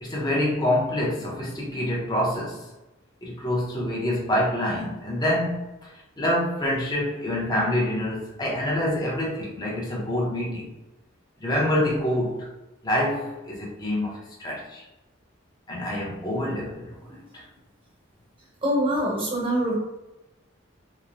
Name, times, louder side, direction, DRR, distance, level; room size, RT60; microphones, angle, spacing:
voice 1, 0.0-2.6 3.2-5.9 6.2-10.7 11.4-12.5 12.8-14.8 15.7-17.0 17.3-17.4, left 1 dB, 20° left, -4 dB, 0.6 m, -26 dB
voice 2, 18.6-19.8, equal, 25° right, -4 dB, 0.8 m, -25 dB
2.9 x 2.0 x 2.5 m, 1.0 s
head